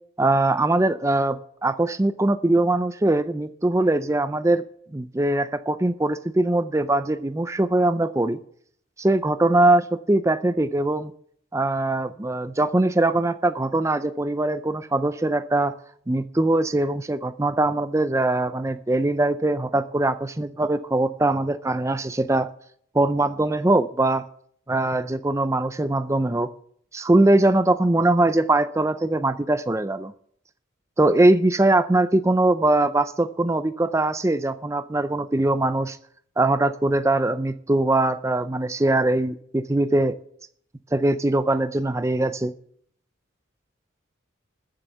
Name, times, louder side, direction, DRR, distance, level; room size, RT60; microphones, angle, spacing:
voice 1, 0.2-4.6 4.9-8.4 9.0-11.1 11.5-15.7 16.1-22.5 22.9-24.2 24.7-26.5 26.9-30.1 31.0-36.0 36.4-40.1 40.9-42.5, right 2 dB, 15° right, 12 dB, 0.5 m, -21 dB
13.5 x 7.7 x 6.9 m, 0.63 s
head